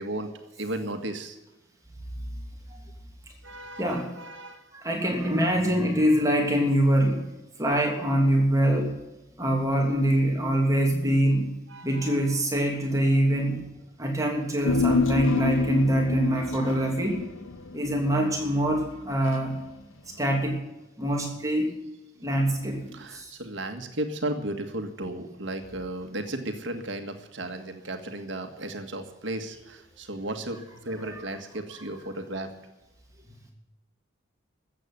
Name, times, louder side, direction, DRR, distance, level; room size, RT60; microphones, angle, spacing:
voice 1, 0.0-1.4 3.4-4.7 11.7-12.2 22.2-22.6 22.9-32.5, right 1 dB, 65° right, 5 dB, 1.8 m, -35 dB
voice 2, 3.8-4.1 4.7-7.3 7.6-8.9 9.4-11.5 11.8-13.6 14.0-17.2 17.7-19.5 20.2-20.6 21.0-21.7 22.2-23.3 31.1-31.2, right 1 dB, 15° right, 0 dB, 2.9 m, -24 dB
Human voice, 14.6-19.3 19.6-19.7, left 5 dB, 80° left, 0.9 m, -28 dB
14.0 x 8.5 x 9.9 m, 1.0 s
head